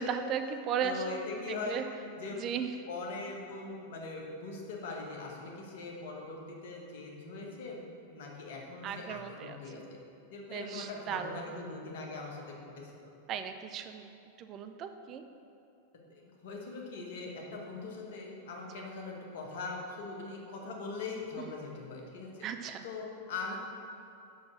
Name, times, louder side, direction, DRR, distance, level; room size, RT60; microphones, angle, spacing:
voice 1, 0.0-1.8 2.4-2.7 8.8-9.6 10.5-11.4 13.3-14.1 14.4-15.2 21.4-21.5 22.4-22.8, right 7 dB, 35° right, 7 dB, 0.4 m, -36 dB
voice 2, 0.8-1.8 2.2-2.4 2.9-7.8 8.1-10.0 10.3-13.1 16.1-22.5 22.8-23.6, left 3 dB, 55° left, -1 dB, 1.4 m, -41 dB
6.1 x 5.7 x 6.2 m, 2.7 s
figure-of-eight pair, 90°, 0 cm